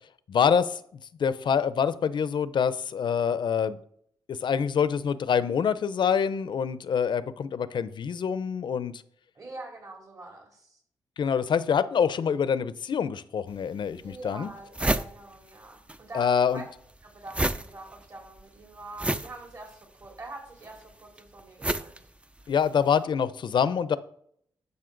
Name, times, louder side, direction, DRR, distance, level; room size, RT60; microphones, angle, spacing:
voice 1, 0.3-0.8 1.2-3.8 4.3-8.9 11.2-14.5 16.1-16.6 22.5-24.0, left 7 dB, 60° left, 15 dB, 0.6 m, -25 dB
voice 2, 9.3-10.8 14.0-16.7 17.0-22.0, right 2 dB, 40° right, 1 dB, 2.8 m, -45 dB
sound 1, 13.5-13.6 14.1-14.2 14.4-16.0 16.2-22.8, right 1 dB, 15° right, 0.5 m, -31 dB
12.0 x 5.4 x 3.9 m, 0.66 s
cardioid pair, 80°, 9 cm